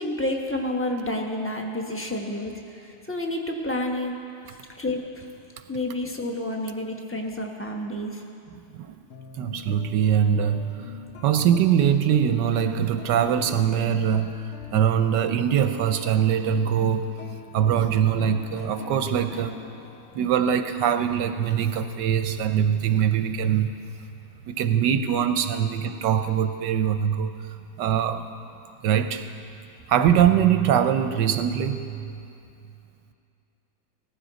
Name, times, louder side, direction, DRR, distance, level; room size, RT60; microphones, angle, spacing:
voice 1, 0.0-2.6 2.8-4.2 4.4-5.2 5.7-8.2, left 1 dB, 10° left, 1 dB, 0.6 m, -29 dB
sound 1, 9.1-21.8, left 5 dB, 60° left, 0.8 m, -42 dB
voice 2, 9.4-10.7 11.2-14.3 14.7-17.1 17.5-19.6 20.2-23.7 24.5-27.3 27.8-28.2 28.8-29.2 29.9-32.2, right 9 dB, 75° right, 8 dB, 1.1 m, -22 dB
18.0 x 14.5 x 4.0 m, 2.6 s
omnidirectional pair, 2.1 m